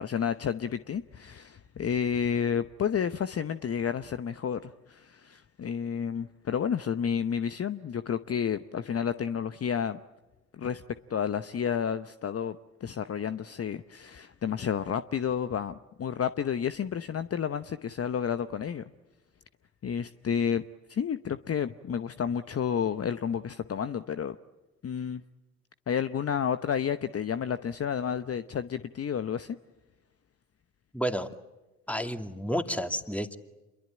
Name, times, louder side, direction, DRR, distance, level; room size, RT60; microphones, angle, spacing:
voice 1, 0.0-10.0 10.5-10.8 11.1-18.8 19.8-20.6 20.9-24.4 24.8-25.2 25.9-29.6, left 7 dB, 40° left, 11 dB, 0.9 m, -31 dB
voice 2, 30.9-31.3 31.9-33.4, equal, 5° left, 7 dB, 2.4 m, -30 dB
27.5 x 22.5 x 8.9 m, 1.1 s
hypercardioid pair, 50°, 37 cm